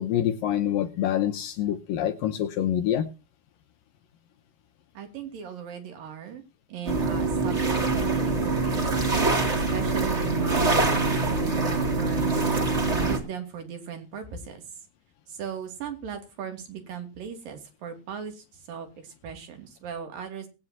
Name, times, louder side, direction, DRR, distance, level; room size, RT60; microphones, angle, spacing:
voice 1, 0.0-3.1, left 10 dB, 75° left, 9 dB, 2.2 m, -26 dB
voice 2, 4.9-6.4 6.7-8.9 9.7-12.4 12.9-14.6 15.3-20.5, right 7 dB, 60° right, 6 dB, 4.1 m, -38 dB
sound 1, 6.9-13.2, right 3 dB, 20° right, 2.2 m, -24 dB
19.5 x 9.9 x 2.8 m, 0.30 s
omnidirectional pair, 4.8 m